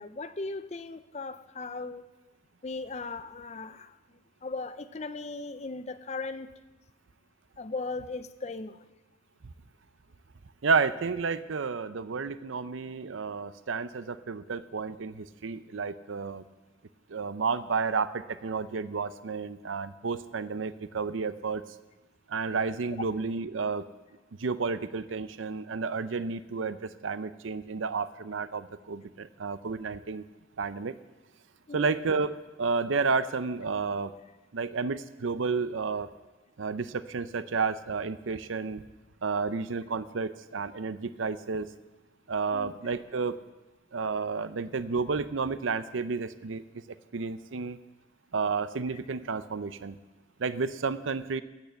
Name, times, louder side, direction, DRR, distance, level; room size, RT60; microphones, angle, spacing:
voice 1, 0.0-2.0 2.6-4.0 4.4-6.5 7.6-8.8 31.7-31.9 42.5-42.9, left 3 dB, 35° left, 12 dB, 0.5 m, -37 dB
voice 2, 10.6-16.4 17.1-21.6 22.3-23.9 24.4-26.8 27.0-30.2 30.6-30.9 31.7-34.1 34.5-36.1 36.6-38.8 39.2-41.7 42.3-43.4 43.9-46.6 47.1-47.8 48.3-50.0 50.4-51.4, right 4 dB, 85° right, 14 dB, 0.6 m, -31 dB
13.5 x 8.3 x 7.6 m, 1.1 s
head